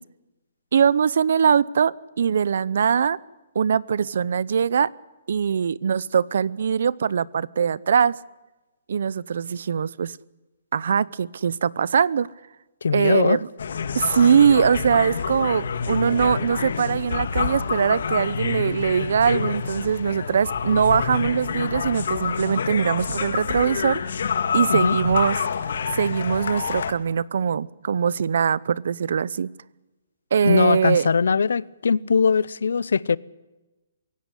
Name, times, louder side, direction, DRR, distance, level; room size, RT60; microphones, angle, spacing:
voice 1, 0.7-3.2 3.5-4.9 5.3-8.2 8.9-10.2 10.7-12.3 12.9-13.5 13.9-24.0 24.5-25.4 25.9-29.5 30.3-31.1, right 7 dB, 60° right, 0.7 m, -22 dB
voice 2, 12.8-13.4 24.7-25.0 30.4-33.2, left 5 dB, 85° left, 0.7 m, -21 dB
sound 1, 13.6-26.9, left 6 dB, 65° left, 1.8 m, -27 dB
24.5 x 17.0 x 8.2 m
hypercardioid pair, 170°, 0 cm